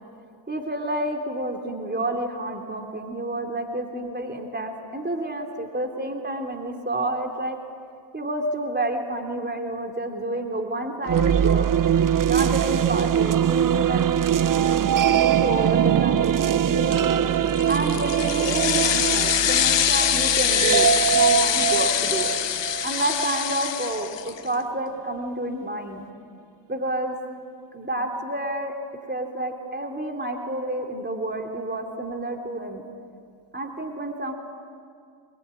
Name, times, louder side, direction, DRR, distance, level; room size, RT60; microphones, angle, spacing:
voice 1, 0.5-7.6 8.1-11.7 12.3-14.0 15.0-17.2 17.6-20.9 21.1-22.3 22.8-26.0 26.7-27.2 27.7-28.8 29.1-32.8 33.5-34.3, right 1 dB, 20° right, 3 dB, 3.3 m, -29 dB
sound 1, 11.0-23.2, right 9 dB, 45° right, 0.7 m, -22 dB
sound 2, 17.5-24.5, left 10 dB, 65° left, 1.0 m, -24 dB
24.0 x 21.5 x 9.8 m, 2.3 s
cardioid pair, 50°, 46 cm